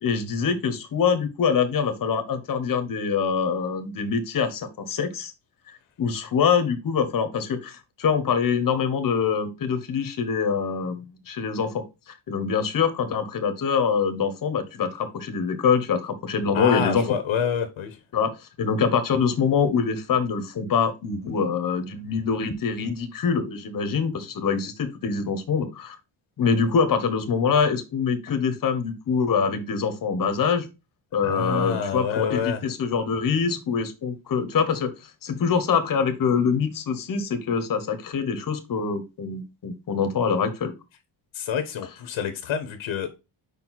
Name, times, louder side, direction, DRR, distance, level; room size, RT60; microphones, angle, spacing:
voice 1, 0.0-5.3 5.7-17.0 18.1-26.0 26.4-30.7 31.1-40.7, left 6 dB, 45° left, 1.1 m, -24 dB
voice 2, 16.5-18.0 31.2-32.6 41.3-43.2, left 7 dB, 75° left, 1.1 m, -27 dB
5.3 x 4.5 x 3.9 m
cardioid pair, 165°, 48 cm